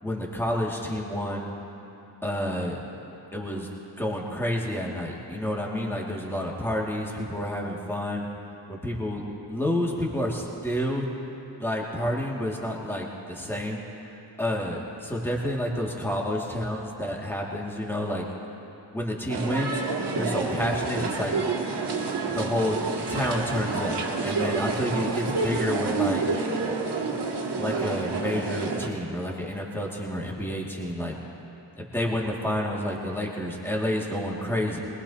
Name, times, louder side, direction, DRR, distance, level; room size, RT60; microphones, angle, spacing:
voice 1, 0.0-1.5 2.2-2.8 3.3-3.7 4.0-8.3 8.7-9.2 9.5-11.0 11.6-13.8 14.4-18.2 18.9-19.8 20.2-21.3 22.3-22.7 23.1-24.0 24.2-26.2 27.6-31.2 31.8-34.8, left 1 dB, 5° left, -3 dB, 2.3 m, -29 dB
sound 1, 19.3-28.9, right 4 dB, 75° right, 2.0 m, -29 dB
21.5 x 20.5 x 2.9 m, 2.9 s
cardioid pair, 100°, 41 cm